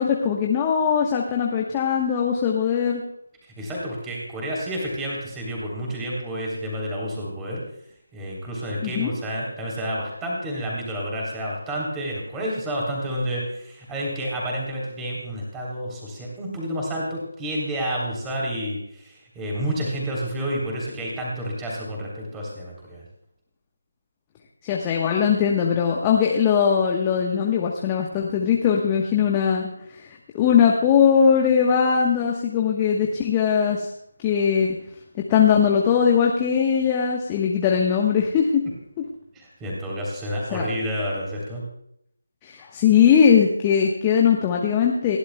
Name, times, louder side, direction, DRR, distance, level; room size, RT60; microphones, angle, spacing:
voice 1, 0.0-3.0 8.8-9.1 24.6-30.1 30.3-33.9 34.2-34.8 35.3-38.6 40.5-40.7 42.4-45.2, left 7 dB, 15° left, 0 dB, 1.2 m, -20 dB
voice 2, 3.6-7.6 8.1-23.0 39.3-41.6, equal, 10° right, -3 dB, 3.5 m, -29 dB
29.5 x 12.0 x 2.3 m, 0.74 s
figure-of-eight pair, 155°, 0 cm